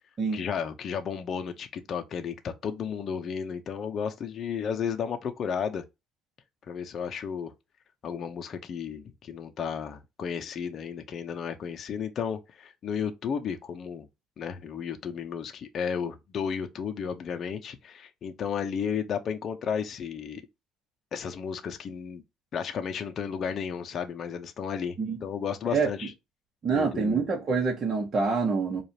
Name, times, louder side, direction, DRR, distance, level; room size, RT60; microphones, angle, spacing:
voice 1, 0.3-5.8 6.7-7.5 8.0-14.1 14.4-20.4 21.1-22.2 22.5-26.1 26.7-27.2, left 7 dB, 45° left, 0.6 m, -33 dB
voice 2, 26.6-28.8, right 4 dB, 35° right, 1.1 m, -26 dB
4.8 x 2.5 x 2.8 m
cardioid pair, 115°, 0 cm